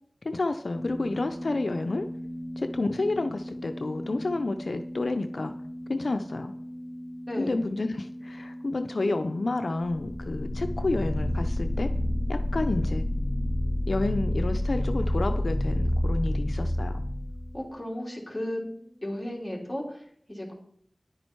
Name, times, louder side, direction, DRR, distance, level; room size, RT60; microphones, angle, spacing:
voice 1, 0.2-2.1 2.6-5.5 5.9-6.5 7.4-11.9 12.3-13.0 13.9-17.0, left 2 dB, 70° left, 7 dB, 0.5 m, -30 dB
sound 1, 0.7-19.2, equal, 30° right, 2.1 m, -41 dB
voice 2, 7.3-7.6 17.5-18.6 19.0-20.5, left 1 dB, 15° left, -2 dB, 3.3 m, -34 dB
sound 2, 9.9-17.6, left 1 dB, 10° right, 2.7 m, -28 dB
10.5 x 8.7 x 4.6 m, 0.66 s
wide cardioid pair, 65°, 0 cm